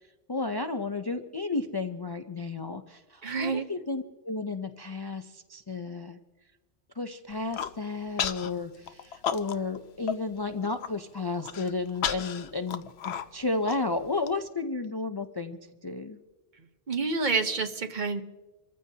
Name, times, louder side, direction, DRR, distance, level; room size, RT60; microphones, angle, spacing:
voice 1, 0.3-6.2 7.0-16.2, left 3 dB, 35° left, 6 dB, 0.4 m, -33 dB
voice 2, 3.2-3.7 16.9-18.2, right 4 dB, 50° right, 8 dB, 1.0 m, -28 dB
Human voice, 7.3-7.7 8.2-8.5 8.9-9.8 10.1-10.2 10.6-10.9 11.4-14.3, left 8 dB, 90° left, 0.9 m, -33 dB
26.5 x 14.5 x 2.8 m, 1.2 s
omnidirectional pair, 1.1 m